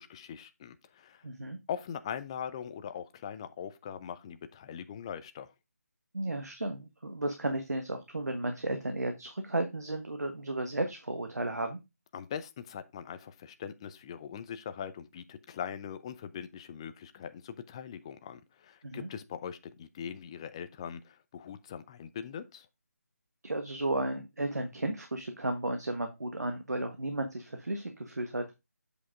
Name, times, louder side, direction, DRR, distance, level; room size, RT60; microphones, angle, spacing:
voice 1, 0.0-1.2 1.7-5.5 12.1-22.7, left 8 dB, 20° left, 0.4 m, -41 dB
voice 2, 1.2-1.6 6.1-11.8 18.8-19.1 23.4-28.6, right 1 dB, 85° right, 1.4 m, -34 dB
8.3 x 5.0 x 3.6 m
figure-of-eight pair, 160°, 9 cm